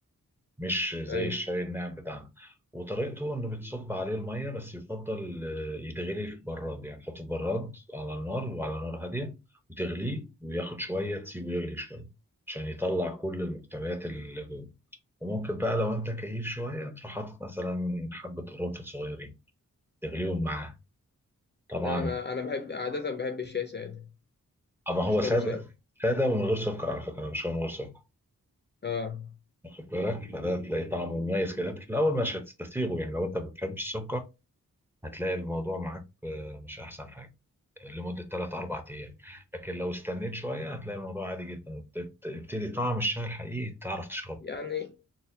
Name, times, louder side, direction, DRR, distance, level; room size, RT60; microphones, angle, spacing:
voice 1, 0.6-9.4 9.7-12.1 12.5-14.7 15.2-19.3 20.0-20.8 21.7-22.2 24.9-25.6 26.0-27.9 29.6-34.2 35.0-37.3 37.8-44.4, equal, 5° right, 0.7 m, -32 dB
voice 2, 21.7-24.0 25.2-25.6 28.8-29.3 44.4-45.0, left 5 dB, 35° left, 0.5 m, -33 dB
4.0 x 2.2 x 2.7 m
wide cardioid pair, 80°, 32 cm